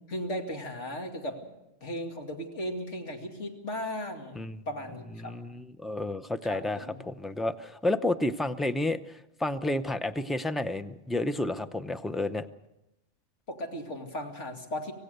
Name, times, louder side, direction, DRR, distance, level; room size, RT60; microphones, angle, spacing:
voice 1, 0.1-1.4 1.8-4.4 4.7-5.4 6.4-7.0 13.5-14.9, equal, 70° left, 2 dB, 2.8 m, -36 dB
voice 2, 5.2-12.5, left 1 dB, ahead, 9 dB, 0.3 m, -31 dB
25.5 x 17.0 x 6.7 m, 0.89 s
omnidirectional pair, 1.3 m